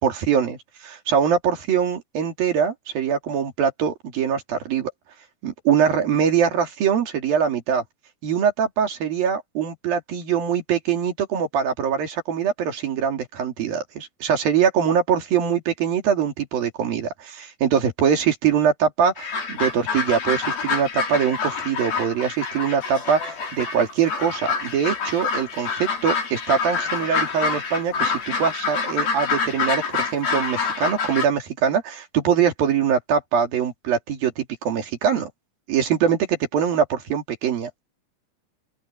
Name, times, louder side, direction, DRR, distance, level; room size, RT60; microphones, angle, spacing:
voice 1, 0.0-4.9 5.4-7.8 8.2-35.3 35.7-37.8, right 7 dB, 75° right, 4.5 m, -23 dB
sound 1, 19.2-31.3, left 5 dB, 75° left, 6.5 m, -27 dB
open air
omnidirectional pair, 4.2 m